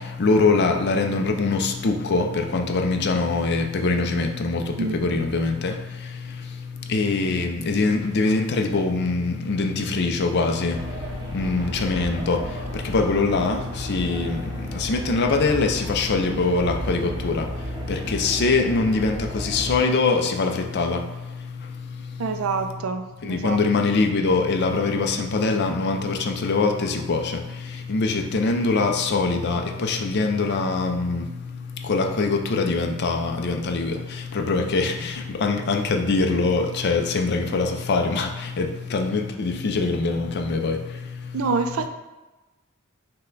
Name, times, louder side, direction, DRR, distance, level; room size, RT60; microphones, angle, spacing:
voice 1, 0.2-4.6 5.0-5.7 6.9-10.8 11.3-12.4 12.8-14.4 14.7-17.4 17.9-21.0 23.2-27.3 27.9-31.2 31.9-34.0 34.3-38.3 38.6-40.8, left 3 dB, 50° left, 4 dB, 0.5 m, -23 dB
voice 2, 4.8-5.2 22.2-23.6 41.3-41.9, right 4 dB, 70° right, 7 dB, 0.4 m, -27 dB
sound 1, 10.7-19.8, right 1 dB, 20° right, 0.6 m, -34 dB
5.6 x 2.2 x 3.8 m, 1.1 s
head